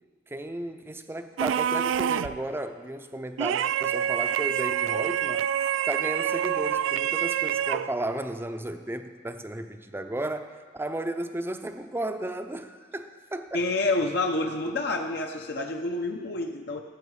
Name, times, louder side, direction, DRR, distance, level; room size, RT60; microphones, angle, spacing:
voice 1, 0.3-5.4 5.9-13.6, right 1 dB, 10° right, 8 dB, 0.6 m, -34 dB
sound 1, 1.4-2.4 3.4-8.0, right 9 dB, 85° right, 0.3 m, -27 dB
voice 2, 13.5-16.8, left 2 dB, 60° left, 3 dB, 0.8 m, -28 dB
17.5 x 7.7 x 4.8 m, 1.6 s
head